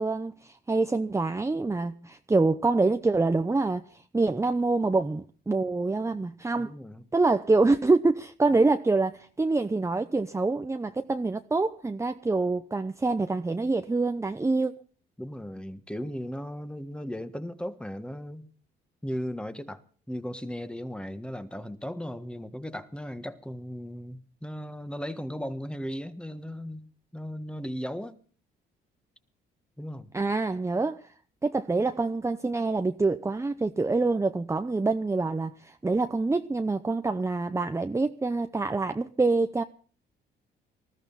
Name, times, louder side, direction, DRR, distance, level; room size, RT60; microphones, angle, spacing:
voice 1, 0.0-3.8 4.1-6.7 7.1-14.7 30.1-31.0 31.4-39.6, right 3 dB, 15° right, 0.8 m, -26 dB
voice 2, 6.6-7.0 15.2-18.5 19.0-19.8 20.1-26.9 27.1-28.2 29.8-30.1, equal, 5° left, 1.4 m, -36 dB
20.0 x 14.0 x 4.1 m
cardioid pair, 90°, 20 cm